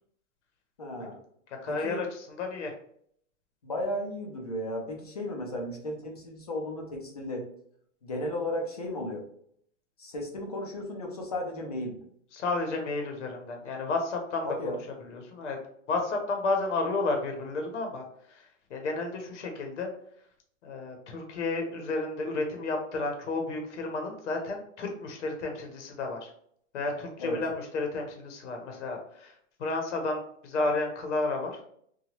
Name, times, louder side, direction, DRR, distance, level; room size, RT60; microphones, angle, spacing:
voice 1, 0.8-1.2 1.7-2.0 3.6-7.5 8.0-9.2 10.0-12.0 14.4-14.8 27.2-27.4, left 1 dB, 30° left, 0 dB, 0.4 m, -34 dB
voice 2, 1.6-2.7 12.3-14.8 15.1-15.6 15.9-18.0 18.3-19.9 20.6-26.3 26.7-31.6, left 3 dB, 60° left, 3 dB, 0.8 m, -32 dB
2.9 x 2.2 x 2.9 m, 0.65 s
hypercardioid pair, 180°, 39 cm